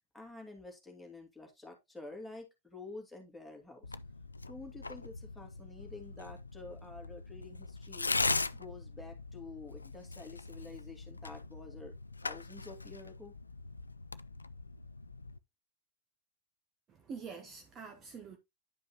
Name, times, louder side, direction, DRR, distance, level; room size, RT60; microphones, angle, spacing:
voice 1, 0.1-4.0 4.5-8.1 8.5-11.9 12.2-13.3, left 3 dB, 5° left, 2.5 m, -49 dB
Tearing, 3.8-15.4, left 3 dB, 80° left, 0.3 m, -40 dB
voice 2, 16.9-18.4, right 5 dB, 25° right, 1.2 m, -46 dB
11.0 x 5.1 x 2.8 m
figure-of-eight pair, 90°, 0 cm